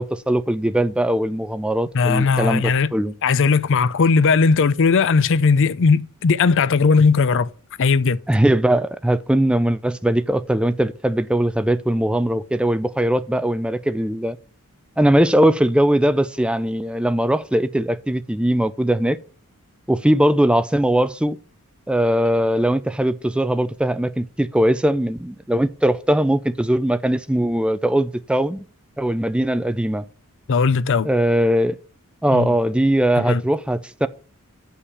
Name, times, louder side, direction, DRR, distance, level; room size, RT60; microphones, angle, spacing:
voice 1, 0.0-3.1 8.3-14.4 15.0-19.2 19.9-21.4 21.9-28.7 29.0-30.0 31.0-31.8 32.2-34.1, right 1 dB, 5° right, 0.4 m, -20 dB
voice 2, 1.9-2.9 3.2-7.5 7.8-8.2 30.5-31.1 32.3-32.5 33.2-33.4, left 4 dB, 55° left, 0.5 m, -17 dB
8.2 x 5.7 x 6.9 m
head